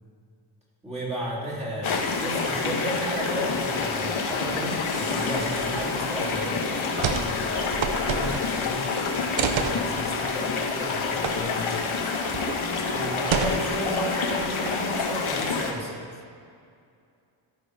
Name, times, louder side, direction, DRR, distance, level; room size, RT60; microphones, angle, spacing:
voice 1, 0.8-6.7 12.8-15.9, equal, 15° right, -7 dB, 3.0 m, -32 dB
sound 1, 1.8-15.7, left 4 dB, 80° left, 1.3 m, -28 dB
sound 2, 7.0-7.3 7.6-8.7 9.4-9.8 11.2-11.3 11.7-11.8 12.3-12.6 13.3-13.9 14.4-14.9, right 6 dB, 65° right, 0.8 m, -28 dB
voice 2, 7.2-12.0, left 5 dB, 25° left, 7 dB, 0.7 m, -38 dB
14.0 x 6.4 x 5.1 m, 2.3 s
wide cardioid pair, 135°, 48 cm